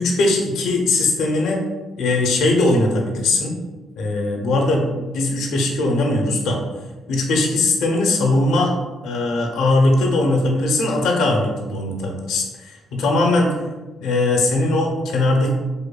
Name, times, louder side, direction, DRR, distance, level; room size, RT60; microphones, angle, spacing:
voice 1, 0.0-1.6 2.0-3.6 4.0-6.6 7.1-8.7 9.0-13.5 14.0-15.5, left 2 dB, 85° left, 1 dB, 0.6 m, -20 dB
5.0 x 2.2 x 2.3 m, 1.2 s
cardioid pair, 90°, 0 cm